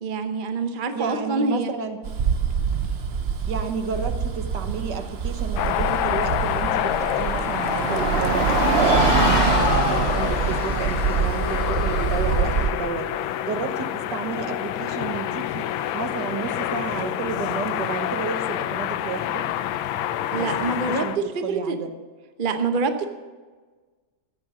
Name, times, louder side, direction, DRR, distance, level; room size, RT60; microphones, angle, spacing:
voice 1, 0.0-1.7 20.3-21.8 22.4-23.0, right 4 dB, 40° right, 7 dB, 0.7 m, -26 dB
voice 2, 0.9-2.0 3.5-8.5 8.8-13.1 13.4-15.6 15.9-19.4 20.3-21.2 21.4-21.9, right 5 dB, 60° right, 7 dB, 1.7 m, -31 dB
Bus, 2.0-12.7, right 6 dB, 85° right, 0.5 m, -24 dB
sound 1, 5.5-21.2, left 11 dB, 85° left, 1.4 m, -27 dB
sound 2, 7.9-10.7, left 5 dB, 65° left, 1.9 m, -26 dB
14.5 x 10.0 x 6.1 m, 1.4 s
omnidirectional pair, 2.1 m